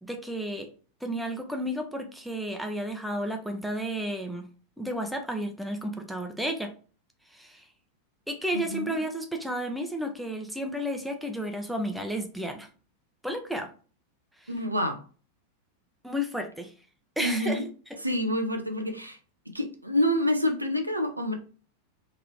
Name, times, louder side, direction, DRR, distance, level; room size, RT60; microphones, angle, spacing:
voice 1, 0.0-0.7 1.0-4.5 4.8-6.7 7.3-7.7 8.3-12.7 13.2-13.7 14.4-14.5 16.0-16.7 17.2-17.6 17.9-18.0, equal, ahead, 4 dB, 0.7 m, -32 dB
voice 2, 8.5-9.0 14.5-15.0 17.2-17.7 18.0-19.2 19.5-21.4, equal, 85° right, 4 dB, 0.6 m, -27 dB
3.9 x 2.8 x 3.0 m, 0.38 s
figure-of-eight pair, 90°, 0 cm